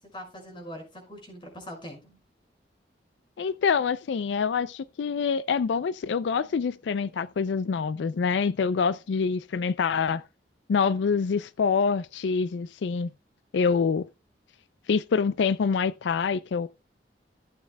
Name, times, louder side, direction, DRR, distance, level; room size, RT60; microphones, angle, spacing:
voice 1, 0.1-2.2, equal, 30° left, 5.5 m, -42 dB
voice 2, 3.4-10.2 10.7-13.1 13.5-14.1 14.9-16.7, left 5 dB, 85° left, 0.4 m, -26 dB
16.0 x 8.6 x 2.2 m
head